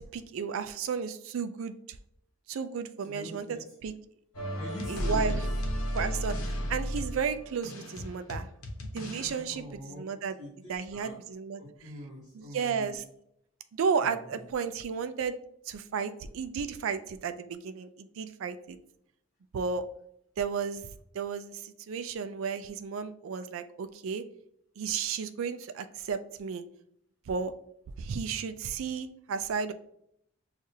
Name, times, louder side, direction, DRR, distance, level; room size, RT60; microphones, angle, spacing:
voice 1, 0.0-1.8 2.5-3.9 4.9-5.3 5.9-8.5 8.9-10.4 10.7-11.6 12.3-13.0 13.7-15.4 15.7-18.8 19.5-19.8 20.4-24.2 24.8-26.6 27.3-27.5 28.0-29.7, right 6 dB, 70° right, 10 dB, 0.3 m, -33 dB
voice 2, 3.0-3.6 4.5-5.4 9.5-11.2 11.6-13.0 14.0-14.4, equal, 35° left, -9 dB, 1.5 m, -44 dB
sound 1, 4.3-9.4, equal, 85° left, 0.9 m, -33 dB
6.4 x 2.4 x 2.7 m, 0.73 s
head